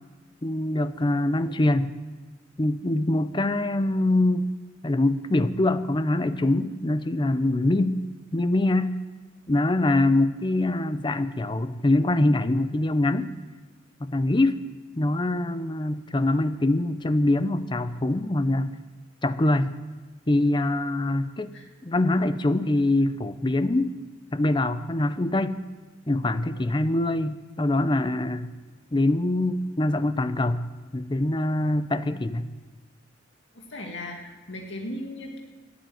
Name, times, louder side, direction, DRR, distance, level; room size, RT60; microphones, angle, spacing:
voice 1, 0.4-2.0 2.6-4.5 4.8-8.0 8.3-9.0 9.5-13.3 14.0-14.6 15.0-18.7 19.2-19.7 20.3-21.5 21.8-23.9 24.3-25.6 26.1-28.5 28.9-30.7 30.9-32.5, left 2 dB, 25° left, 12 dB, 0.6 m, -24 dB
voice 2, 33.5-35.4, left 1 dB, 65° left, 1 dB, 2.0 m, -37 dB
12.0 x 10.5 x 9.2 m, 1.3 s
head